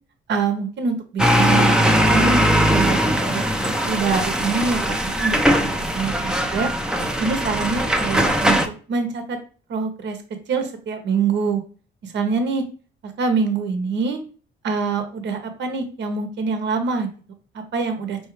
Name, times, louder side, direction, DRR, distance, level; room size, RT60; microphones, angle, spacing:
voice 1, 0.3-2.4 2.7-3.4 3.8-5.7 5.9-6.7 7.2-8.6 8.9-9.4 9.7-10.2 10.5-11.6 12.0-12.6 13.0-14.2 14.6-17.1 17.7-18.2, right 5 dB, 65° right, 6 dB, 1.0 m, -24 dB
sound 1, 1.2-8.7, equal, 5° right, 0.6 m, -20 dB
4.6 x 3.0 x 3.2 m, 0.38 s
cardioid pair, 90°, 20 cm